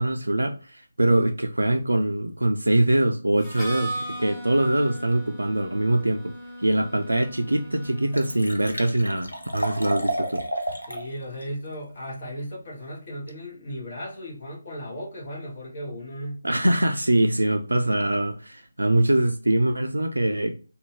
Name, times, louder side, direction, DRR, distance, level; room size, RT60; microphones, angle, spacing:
voice 1, 0.0-6.3 6.6-10.4 16.4-20.6, right 1 dB, 75° right, 0.3 m, -23 dB
Harmonica, 3.4-9.1, right 1 dB, 5° left, 0.6 m, -38 dB
Liquid, 7.0-7.1 7.5-7.6 7.8-11.1 11.4-11.5, right 1 dB, 80° left, 0.6 m, -31 dB
voice 2, 10.9-16.4, equal, 35° left, 1.0 m, -36 dB
2.6 x 2.2 x 3.1 m
figure-of-eight pair, 150°, 0 cm